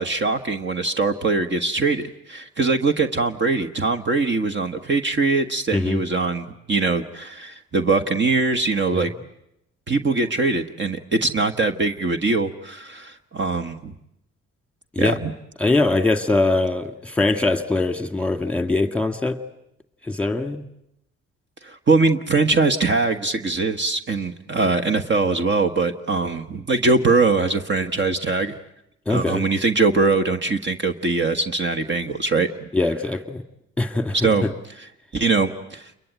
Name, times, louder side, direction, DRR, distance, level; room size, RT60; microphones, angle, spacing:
voice 1, 0.0-9.1 9.9-13.9 15.0-15.3 21.6-28.5 29.1-32.7 34.1-34.5 34.8-35.9, right 3 dB, 40° right, 8 dB, 1.4 m, -22 dB
voice 2, 15.6-19.4 20.0-20.6 29.1-29.4 32.7-33.4 33.8-34.2 34.4-34.5, left 2 dB, 5° left, 8 dB, 1.9 m, -22 dB
29.0 x 22.5 x 9.2 m, 0.82 s
cardioid pair, 90°, 30 cm